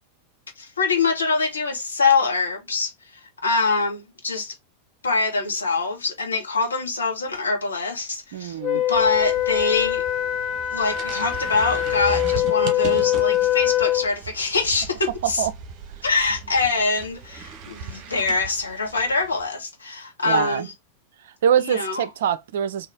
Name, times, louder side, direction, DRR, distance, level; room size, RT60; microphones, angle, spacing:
voice 1, 0.6-4.5 5.0-10.0 10.7-15.4 16.0-20.7 21.6-22.0, left 4 dB, 75° left, 1.4 m, -24 dB
voice 2, 8.3-8.8 15.2-15.5 20.3-20.7 21.2-22.9, right 9 dB, 60° right, 0.4 m, -24 dB
Wind instrument woodwind instrument, 8.6-14.1, left 13 dB, 35° left, 0.8 m, -23 dB
sound 1, 8.9-19.5, right 5 dB, 40° right, 1.0 m, -38 dB
4.1 x 2.8 x 3.5 m
figure-of-eight pair, 90°, 0 cm